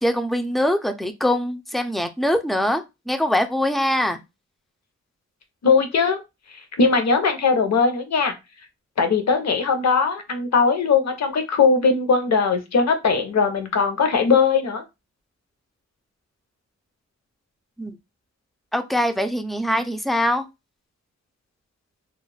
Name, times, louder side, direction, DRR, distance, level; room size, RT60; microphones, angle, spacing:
voice 1, 0.0-4.2 17.8-17.9 18.7-20.5, left 1 dB, ahead, 7 dB, 0.3 m, -23 dB
voice 2, 5.6-6.2 6.8-8.3 9.0-14.8, left 5 dB, 60° left, 6 dB, 0.7 m, -19 dB
2.4 x 2.1 x 3.1 m, 0.23 s
wide cardioid pair, 85°, 30 cm